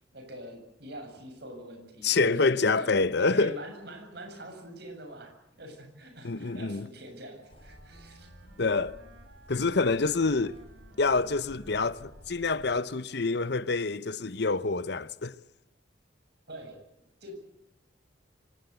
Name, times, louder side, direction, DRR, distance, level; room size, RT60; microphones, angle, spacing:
voice 1, 0.1-2.4 2.7-2.9 3.2-8.3 16.5-16.8 17.2-17.5, right 1 dB, 60° right, 7.3 m, -44 dB
voice 2, 2.0-3.6 6.2-6.9 8.6-9.0 9.5-10.6 11.0-15.3, left 3 dB, 60° left, 0.9 m, -27 dB
Wind instrument woodwind instrument, 7.3-13.1, right 1 dB, 75° right, 4.3 m, -57 dB
sound 1, 7.5-12.8, equal, 30° left, 3.5 m, -53 dB
25.0 x 18.5 x 8.2 m
head